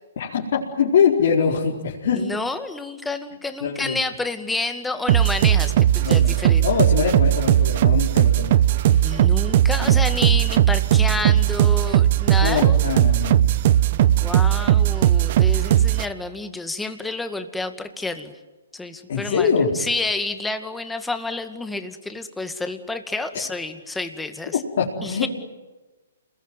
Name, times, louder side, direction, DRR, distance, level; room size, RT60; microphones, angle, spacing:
voice 1, 0.2-2.3 3.6-4.0 6.0-8.5 8.9-9.2 9.7-10.0 12.4-13.8 14.1-14.2 19.1-19.7 24.5-25.3, left 6 dB, 60° left, -3 dB, 4.9 m, -23 dB
voice 2, 2.1-6.7 8.9-12.8 14.0-18.3 18.7-19.5 19.7-24.6 25.0-25.3, left 3 dB, 5° left, 7 dB, 2.2 m, -29 dB
sound 1, 5.1-16.1, right 11 dB, 45° right, 0.9 m, -18 dB
30.0 x 21.5 x 9.3 m, 1.2 s
hypercardioid pair, 135°, 0 cm